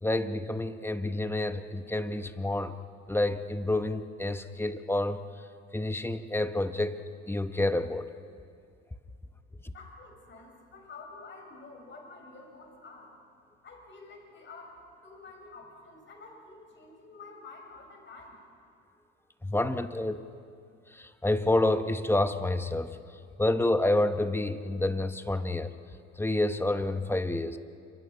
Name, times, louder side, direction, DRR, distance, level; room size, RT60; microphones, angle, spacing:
voice 1, 0.0-2.8 3.1-5.2 5.7-7.0 7.3-8.1 19.4-20.2 20.9-22.9 23.4-25.7 26.2-27.6, left 2 dB, 10° left, 9 dB, 1.2 m, -28 dB
voice 2, 9.7-13.1 13.6-18.4, left 3 dB, 40° left, 1 dB, 7.3 m, -49 dB
28.5 x 24.5 x 5.8 m, 2.3 s
supercardioid pair, 90°, 29 cm